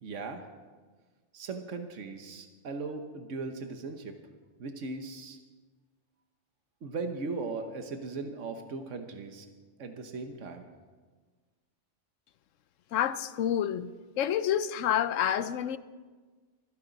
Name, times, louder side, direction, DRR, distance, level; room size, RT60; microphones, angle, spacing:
voice 1, 0.0-0.4 1.3-4.2 4.6-5.4 6.8-9.5 9.8-10.7, right 3 dB, 75° right, 1.5 m, -38 dB
voice 2, 12.9-13.9 14.2-15.8, left 10 dB, 90° left, 1.0 m, -28 dB
26.0 x 10.5 x 4.0 m
omnidirectional pair, 1.3 m